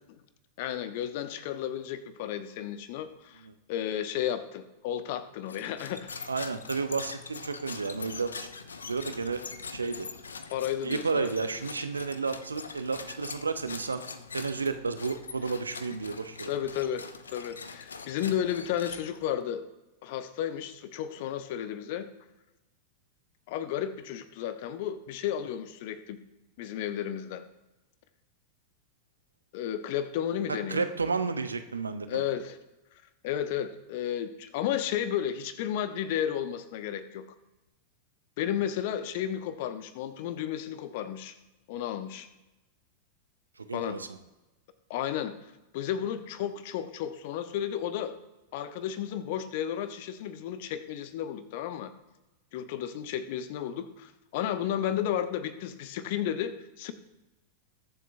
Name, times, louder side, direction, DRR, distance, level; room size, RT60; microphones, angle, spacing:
voice 1, 0.6-3.4 3.7-6.2 10.5-11.3 16.5-19.6 20.0-22.1 23.5-26.2 26.6-27.4 29.5-30.9 32.1-32.6 33.2-37.2 38.4-41.3 41.7-42.3 43.7-44.0 44.9-45.4 45.7-48.2 48.5-51.9 52.5-56.9, left 10 dB, 50° left, 12 dB, 0.9 m, -33 dB
sound 1, 5.5-19.4, left 5 dB, 75° left, 0.6 m, -43 dB
voice 2, 6.3-8.3 8.9-9.4 9.7-10.1 10.8-14.0 14.3-16.5 30.7-32.2 43.6-44.1, right 4 dB, 75° right, 9 dB, 0.8 m, -32 dB
21.0 x 7.5 x 2.7 m, 1.0 s
figure-of-eight pair, 90°, 0 cm